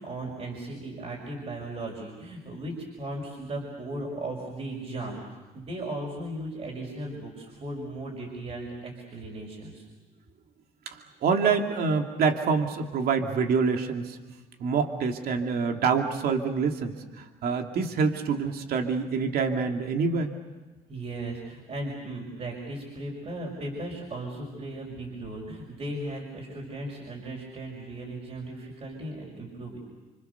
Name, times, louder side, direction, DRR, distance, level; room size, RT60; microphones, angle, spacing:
voice 1, 0.0-9.9 20.9-29.8, right 1 dB, 40° right, -1 dB, 6.1 m, -37 dB
voice 2, 10.9-14.2 14.6-20.3, right 5 dB, 65° right, 4 dB, 2.6 m, -26 dB
28.5 x 26.0 x 6.9 m, 1.2 s
cardioid pair, 110°, 17 cm